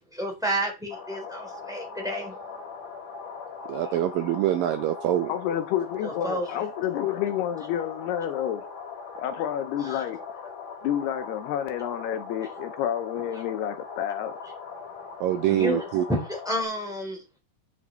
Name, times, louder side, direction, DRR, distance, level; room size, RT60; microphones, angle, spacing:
voice 1, 0.0-2.4 6.0-6.6 9.8-10.0 15.6-17.4, equal, ahead, 3.2 m, -31 dB
sound 1, 0.9-16.6, left 5 dB, 65° left, 3.8 m, -40 dB
voice 2, 3.7-5.3 15.2-16.1, right 12 dB, 80° right, 2.0 m, -25 dB
voice 3, 5.3-8.7 9.2-10.2 10.8-14.3, left 10 dB, 85° left, 3.0 m, -29 dB
8.6 x 8.5 x 4.4 m
omnidirectional pair, 4.7 m